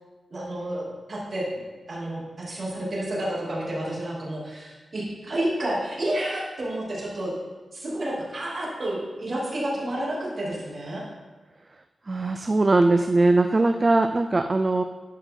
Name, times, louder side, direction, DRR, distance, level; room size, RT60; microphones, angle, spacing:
voice 1, 0.3-1.6 1.9-7.3 7.7-11.1, right 1 dB, 50° right, -5 dB, 2.8 m, -30 dB
voice 2, 12.1-14.8, right 2 dB, 30° right, 7 dB, 0.3 m, -20 dB
11.5 x 5.3 x 3.8 m, 1.3 s
wide cardioid pair, 115°, 0 cm